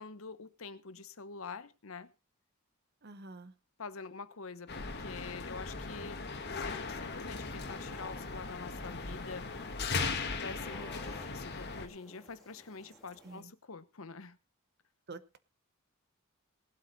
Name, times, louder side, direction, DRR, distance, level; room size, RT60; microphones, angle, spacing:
voice 1, 0.0-2.1 3.8-9.7 10.4-14.4, left 4 dB, 70° left, 0.9 m, -46 dB
voice 2, 3.0-3.6 13.2-13.5 15.1-15.4, right 3 dB, 50° right, 0.9 m, -48 dB
sound 1, 4.7-11.9, left 4 dB, 50° left, 1.6 m, -38 dB
sound 2, 6.8-13.4, left 1 dB, ahead, 2.9 m, -56 dB
18.5 x 8.1 x 4.0 m
head